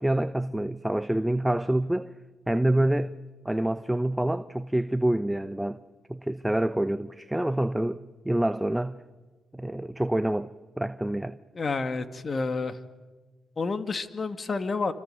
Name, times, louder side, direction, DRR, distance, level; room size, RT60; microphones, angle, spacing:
voice 1, 0.0-2.1 2.5-3.2 3.4-5.8 6.1-9.0 9.5-10.5 10.8-11.4, right 1 dB, 10° right, 1.0 m, -27 dB
voice 2, 11.5-12.8 13.6-14.9, left 4 dB, 45° left, 2.3 m, -29 dB
28.0 x 25.5 x 8.2 m
supercardioid pair, 50°, 0 cm